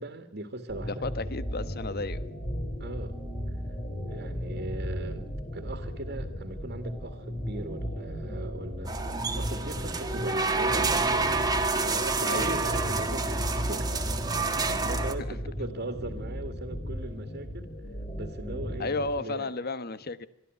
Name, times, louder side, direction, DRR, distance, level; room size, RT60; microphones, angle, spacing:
voice 1, 0.0-1.1 2.8-3.1 3.5-3.6 4.1-5.3 5.5-11.3 11.8-17.7 18.1-19.7, right 2 dB, 55° right, 7 dB, 2.1 m, -39 dB
sound 1, 0.7-19.1, equal, 35° left, 4.3 m, -35 dB
voice 2, 1.0-2.2 12.2-12.6 18.8-20.3, left 3 dB, 50° left, 15 dB, 1.2 m, -33 dB
sound 2, 8.9-15.1, right 3 dB, 20° right, 1.8 m, -28 dB
23.5 x 14.0 x 9.2 m, 0.77 s
head